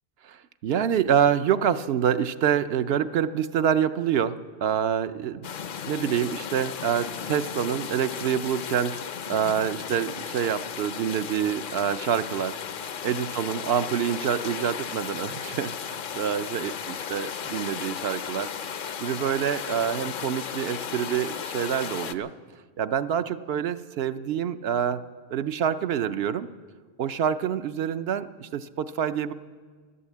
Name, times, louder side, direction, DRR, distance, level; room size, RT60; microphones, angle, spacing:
voice 1, 0.6-4.4 4.6-5.5 5.9-8.9 9.3-12.5 13.0-18.5 19.0-22.3 22.8-25.0 25.3-26.5 27.0-29.3, right 8 dB, 70° right, 11 dB, 0.8 m, -26 dB
sound 1, 5.4-22.1, left 7 dB, 55° left, 0.7 m, -35 dB
14.0 x 12.0 x 8.4 m, 1.5 s
omnidirectional pair, 1.1 m